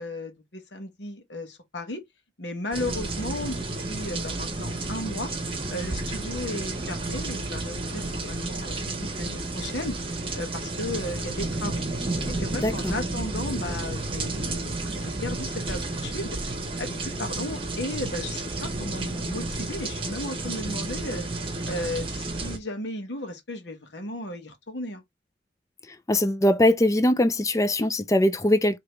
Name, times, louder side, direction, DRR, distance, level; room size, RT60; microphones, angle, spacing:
voice 1, 0.0-2.0 2.4-11.8 12.3-16.4 16.8-21.2 21.6-25.0, left 1 dB, 80° left, 1.3 m, -35 dB
sound 1, 2.7-22.6, right 2 dB, 30° right, 1.1 m, -31 dB
voice 2, 12.6-12.9 26.1-28.8, left 1 dB, 20° left, 0.4 m, -21 dB
4.9 x 3.0 x 3.1 m
head